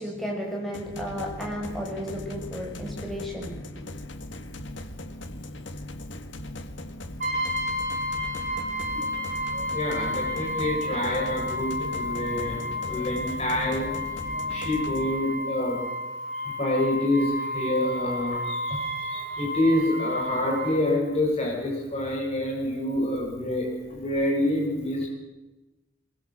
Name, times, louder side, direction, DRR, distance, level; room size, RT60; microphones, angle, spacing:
voice 1, 0.0-3.9, equal, ahead, -2 dB, 7.1 m, -34 dB
sound 1, 0.7-15.1, left 1 dB, 65° left, 1.8 m, -39 dB
Brass instrument, 7.2-20.8, left 1 dB, 40° right, 7.3 m, -31 dB
voice 2, 9.5-15.8 16.4-25.1, left 1 dB, 30° left, -1 dB, 6.8 m, -27 dB
22.5 x 21.5 x 7.7 m, 1.1 s
head